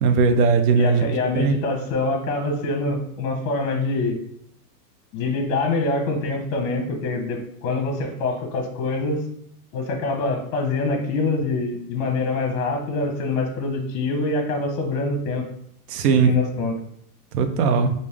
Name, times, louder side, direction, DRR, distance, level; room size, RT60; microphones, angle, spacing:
voice 1, 0.0-1.1 1.4-1.5 15.9-16.3 17.3-17.9, right 5 dB, 80° right, 8 dB, 0.6 m, -18 dB
voice 2, 0.8-4.2 5.1-9.2 9.7-15.4 16.1-16.8, left 3 dB, 55° left, 3 dB, 0.9 m, -25 dB
3.5 x 2.6 x 3.3 m, 0.70 s
supercardioid pair, 165°, 47 cm